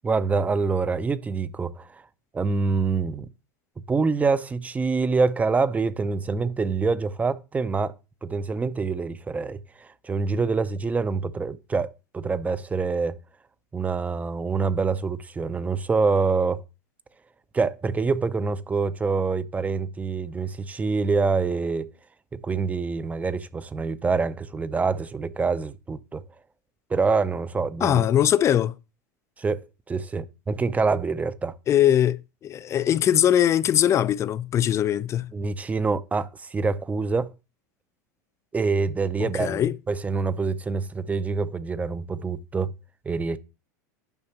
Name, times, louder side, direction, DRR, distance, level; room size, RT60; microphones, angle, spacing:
voice 1, 0.0-2.0 2.3-3.3 3.9-7.9 8.2-13.2 13.7-16.6 17.5-21.9 22.3-26.2 26.9-28.0 29.4-31.6 35.3-37.3 38.5-42.7 43.1-43.4, right 4 dB, 15° right, 0.6 m, -26 dB
voice 2, 27.8-28.7 31.7-35.3 39.2-39.8, left 10 dB, 30° left, 0.4 m, -21 dB
10.5 x 5.6 x 2.9 m
hypercardioid pair, 105°, 9 cm